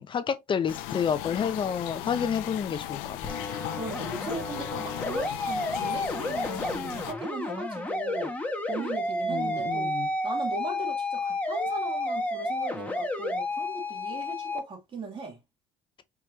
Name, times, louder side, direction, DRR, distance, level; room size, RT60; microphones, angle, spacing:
voice 1, 0.0-3.2 9.3-10.1, left 7 dB, 35° left, 0.9 m, -29 dB
sound 1, 0.7-7.1, left 13 dB, 90° left, 0.6 m, -37 dB
sound 2, 3.2-14.6, left 1 dB, 10° left, 1.5 m, -31 dB
voice 2, 3.7-8.4 8.7-9.9 10.2-15.4, right 3 dB, 40° right, 2.3 m, -38 dB
4.9 x 3.3 x 2.9 m
supercardioid pair, 95°, 14 cm